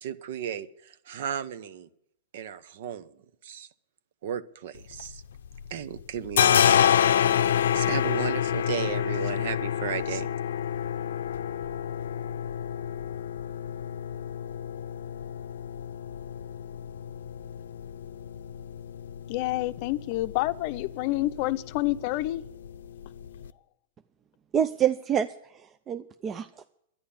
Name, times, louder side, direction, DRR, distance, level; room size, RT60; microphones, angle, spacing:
voice 1, 0.0-1.9 2.3-3.1 3.4-3.7 4.2-5.2 5.7-6.9 7.7-10.3, right 9 dB, 60° right, 0.9 m, -34 dB
sound 1, 4.8-5.7 6.0-23.5, left 9 dB, 90° left, 0.6 m, -28 dB
voice 2, 19.3-22.4, left 17 dB, 45° left, 0.6 m, -28 dB
voice 3, 24.5-26.7, right 9 dB, 20° right, 0.5 m, -28 dB
11.5 x 10.0 x 8.6 m
supercardioid pair, 150°, 0 cm